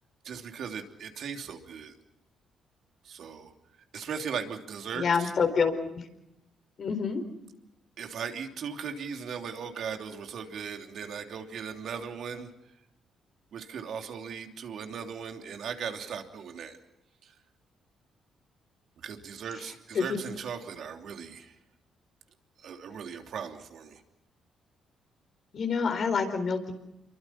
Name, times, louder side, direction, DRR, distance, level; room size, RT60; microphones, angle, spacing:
voice 1, 0.2-2.0 3.0-3.5 3.9-5.3 8.0-12.5 13.5-16.8 17.2-17.3 19.0-21.5 22.6-24.0, right 7 dB, 65° right, 4 dB, 3.0 m, -38 dB
voice 2, 4.9-6.1 6.8-7.2 19.9-20.0 25.5-26.7, left 5 dB, 55° left, 7 dB, 4.4 m, -27 dB
27.5 x 23.5 x 5.8 m, 0.88 s
cardioid pair, 90°, 0 cm